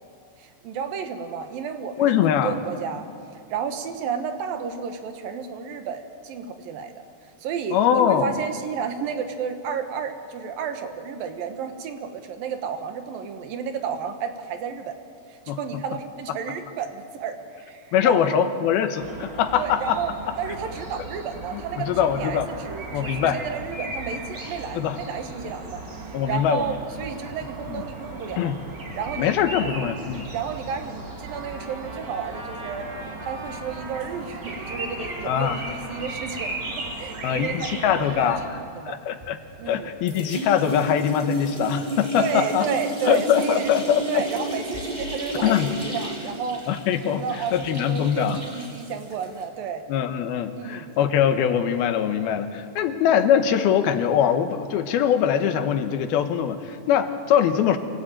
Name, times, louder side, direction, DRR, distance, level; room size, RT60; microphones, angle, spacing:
voice 1, 0.4-3.1 3.5-6.9 7.4-14.9 15.3-18.5 19.5-20.1 20.4-21.9 22.2-28.5 28.9-29.7 30.3-32.9 33.2-39.0 39.6-39.9 42.2-43.7 44.1-46.6 47.0-49.8 50.6-50.9, right 6 dB, 70° right, 6 dB, 3.0 m, -32 dB
voice 2, 2.0-2.6 7.7-8.4 15.5-15.6 17.9-20.0 21.5-22.5 22.9-23.4 24.7-25.0 26.1-26.8 27.7-27.8 28.4-28.6 29.2-30.3 35.3-35.6 37.2-38.4 38.9-39.4 39.7-42.7 43.0-44.2 45.4-45.7 46.7-47.2 47.5-48.4 49.9-57.8, left 9 dB, 80° left, 8 dB, 3.1 m, -22 dB
sound 1, 19.0-38.4, right 2 dB, 30° right, 2.7 m, -36 dB
Trumpet, 31.3-38.4, right 2 dB, 50° right, 4.5 m, -43 dB
sound 2, 39.2-39.8 40.1-49.4, right 1 dB, 10° right, 3.2 m, -32 dB
26.5 x 17.5 x 9.1 m, 2.4 s
omnidirectional pair, 4.3 m